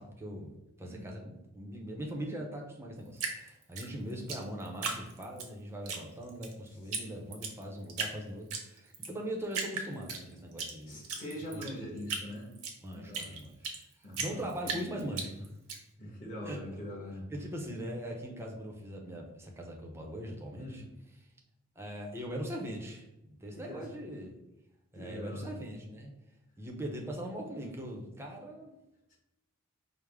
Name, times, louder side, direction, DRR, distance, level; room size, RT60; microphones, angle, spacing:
voice 1, 0.0-11.1 11.5-11.9 12.8-13.7 14.2-15.5 16.4-16.6 17.3-20.8 21.8-24.4 24.9-26.1 26.6-28.8, equal, 10° right, 0 dB, 0.6 m, -41 dB
Drip, 3.2-5.5 5.9-6.5 6.9-7.0 7.3-8.1 8.5-9.1 9.5-10.7 11.0-13.8 14.1-15.8, right 4 dB, 75° right, 0.7 m, -36 dB
voice 2, 10.9-12.5 12.9-14.7 16.0-17.3 20.5-20.9 23.5-23.9 24.9-25.5 29.1-29.2, equal, 35° left, -4 dB, 1.2 m, -43 dB
4.8 x 2.0 x 3.4 m, 0.93 s
head